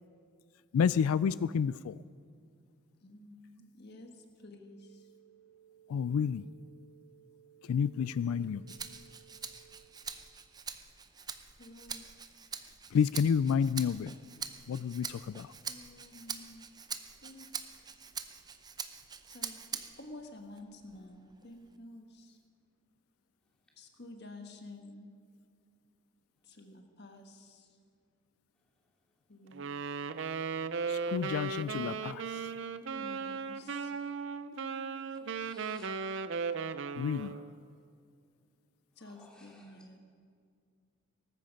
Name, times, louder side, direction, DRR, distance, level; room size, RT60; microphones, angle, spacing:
voice 1, 0.7-2.0 5.9-6.5 7.7-8.6 12.9-14.1 14.7-15.5 30.9-32.2 37.0-37.3, left 7 dB, 80° left, 17 dB, 0.3 m, -30 dB
voice 2, 3.0-5.1 7.9-8.3 11.6-12.1 15.6-16.7 17.2-17.5 17.7-17.9 19.3-22.4 23.7-25.1 26.4-27.7 29.3-29.7 33.0-33.9 39.0-40.0, left 2 dB, 50° left, 4 dB, 1.4 m, -51 dB
sound 1, 4.3-9.7, right 11 dB, 35° left, 2.6 m, -61 dB
Rattle (instrument), 8.7-20.1 20.6-21.8, right 6 dB, 20° right, 0.6 m, -44 dB
Wind instrument woodwind instrument, 29.5-37.5, right 5 dB, 60° right, 0.6 m, -37 dB
voice 3, 35.3-36.3 37.0-37.4 39.0-39.8, left 1 dB, 5° left, -3 dB, 2.8 m, -59 dB
18.5 x 14.5 x 5.3 m, 2.2 s
head